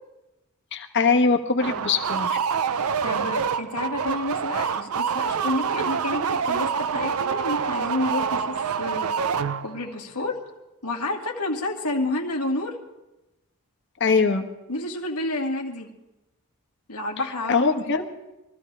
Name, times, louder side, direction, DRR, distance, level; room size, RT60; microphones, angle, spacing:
voice 1, 0.7-2.3 14.0-14.4 17.5-18.1, left 4 dB, 55° left, 5 dB, 1.4 m, -21 dB
sound 1, 1.6-9.9, right 6 dB, 75° right, 0.5 m, -26 dB
voice 2, 2.6-9.1 9.6-10.4 10.8-12.8 14.7-15.9 16.9-17.9, left 2 dB, 85° left, 0 dB, 2.3 m, -30 dB
23.0 x 14.5 x 3.4 m, 0.98 s
head